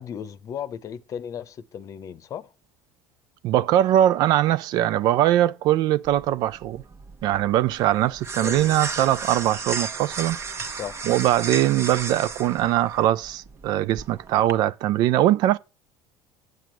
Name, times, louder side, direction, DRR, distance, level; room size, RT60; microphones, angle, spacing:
voice 1, 0.0-2.5 8.4-8.8 10.6-11.0, left 8 dB, 45° left, 0.7 m, -36 dB
voice 2, 3.4-6.8 7.2-10.4 11.1-15.6, right 13 dB, 60° right, 0.4 m, -21 dB
sound 1, 6.0-14.5, right 4 dB, 35° right, 1.0 m, -34 dB
7.9 x 7.5 x 4.6 m
hypercardioid pair, 85°, 8 cm